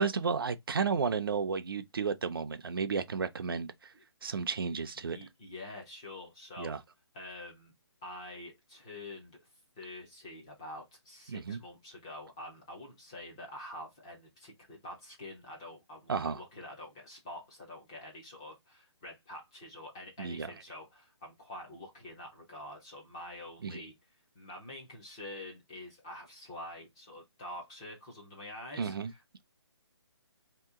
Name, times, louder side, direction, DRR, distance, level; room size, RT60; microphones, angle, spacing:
voice 1, 0.0-3.9 4.2-5.2 6.6-6.8 11.3-11.6 16.1-16.4 20.2-20.5 23.6-23.8 28.8-29.1, right 5 dB, 55° right, 0.5 m, -32 dB
voice 2, 5.0-6.8 7.1-7.7 8.0-9.5 9.8-23.9 24.3-29.2, left 1 dB, 10° left, 0.5 m, -46 dB
2.8 x 2.7 x 3.5 m
hypercardioid pair, 170°, 14 cm